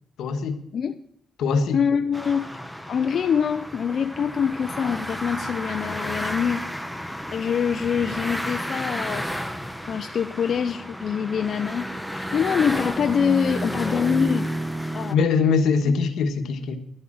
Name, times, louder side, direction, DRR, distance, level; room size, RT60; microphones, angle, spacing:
voice 1, 0.2-0.6 1.4-1.8 15.1-16.8, left 5 dB, 85° left, 1.3 m, -22 dB
voice 2, 1.7-2.5 2.9-6.6 7.3-9.3 9.9-14.5 14.9-15.2 15.9-16.0, left 7 dB, 60° left, 0.5 m, -24 dB
sound 1, 2.1-15.1, equal, ahead, 1.0 m, -31 dB
12.5 x 8.1 x 7.6 m
cardioid pair, 100°, 0 cm